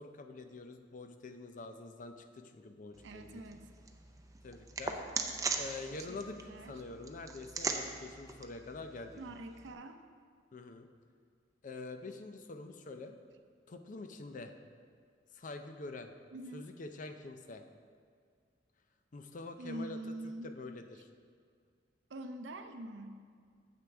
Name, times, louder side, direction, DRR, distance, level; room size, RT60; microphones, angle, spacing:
voice 1, 0.0-3.6 4.4-5.0 5.5-9.2 10.5-10.9 11.6-13.1 13.7-14.5 15.3-16.1 16.5-17.6 19.1-20.0 20.4-21.1, left 3 dB, 45° left, 7 dB, 0.5 m, -46 dB
sound 1, 2.9-9.7, right 4 dB, 20° right, 0.5 m, -41 dB
voice 2, 3.0-3.7 5.9-6.8 9.2-10.0 16.3-16.7 19.6-20.5 22.1-23.2, right 1 dB, 75° right, 7 dB, 0.6 m, -45 dB
9.3 x 7.5 x 3.4 m, 2.1 s
head